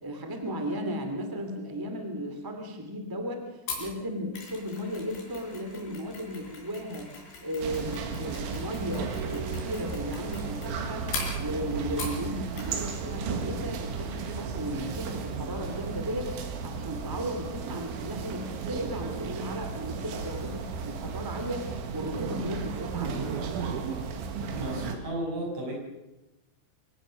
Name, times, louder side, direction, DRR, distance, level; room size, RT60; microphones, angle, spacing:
voice 1, 0.0-7.1 7.4-23.3, equal, 15° right, 5 dB, 0.6 m, -35 dB
Mechanisms, 3.7-12.3 12.6-13.0 13.3-13.4, left 4 dB, 80° left, 7.6 m, -41 dB
sound 1, 7.6-25.0, right 5 dB, 80° right, 4.3 m, -34 dB
sound 2, 11.0-16.2, right 4 dB, 60° right, 3.6 m, -46 dB
voice 2, 24.5-25.7, right 1 dB, 35° right, -1 dB, 7.5 m, -33 dB
24.0 x 19.5 x 6.4 m, 0.99 s
omnidirectional pair, 5.5 m